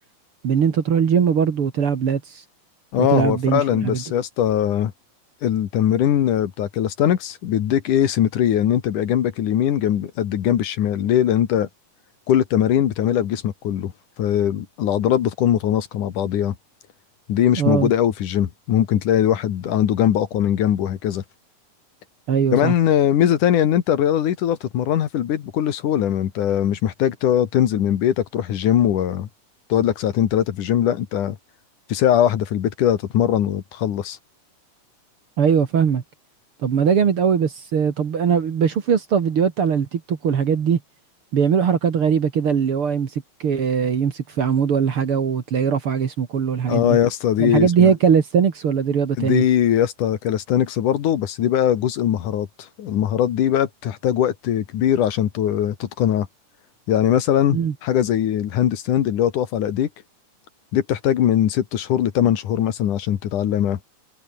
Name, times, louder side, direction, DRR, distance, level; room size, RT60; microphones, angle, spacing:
voice 1, 0.4-2.4 3.0-4.0 17.6-17.9 22.3-22.7 35.4-36.0 36.6-40.8 41.3-47.0 47.4-49.4 57.5-57.7, right 7 dB, 50° right, 2.3 m, -20 dB
voice 2, 2.9-4.9 5.4-11.7 12.3-13.9 14.2-16.6 17.3-21.2 22.5-29.3 29.7-31.4 31.9-34.2 46.7-47.9 49.2-56.3 56.9-59.9 60.7-63.8, left 10 dB, 75° left, 3.1 m, -20 dB
omnidirectional pair, 3.7 m